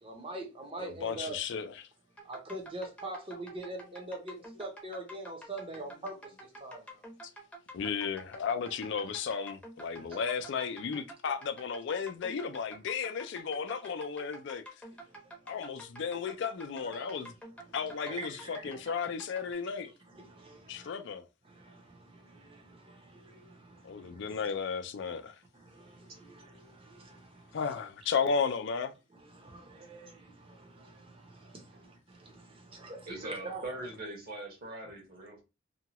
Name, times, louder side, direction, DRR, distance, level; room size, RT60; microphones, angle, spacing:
voice 1, 0.0-1.4 2.2-7.0 10.1-10.2 15.0-15.5 16.8-17.2 17.6-18.8 20.1-20.9 21.4-24.4 25.1-25.2 25.5-27.6 29.2-33.6, right 2 dB, 30° right, 0.7 m, -45 dB
voice 2, 0.8-1.9 7.7-14.6 15.5-17.3 17.7-19.9 20.7-21.3 23.8-25.4 27.5-28.9, left 6 dB, 65° left, 0.4 m, -34 dB
sound 1, 2.2-19.5, right 1 dB, 5° left, 0.7 m, -50 dB
voice 3, 33.0-35.4, right 2 dB, 50° right, 1.2 m, -41 dB
2.8 x 2.3 x 2.9 m
head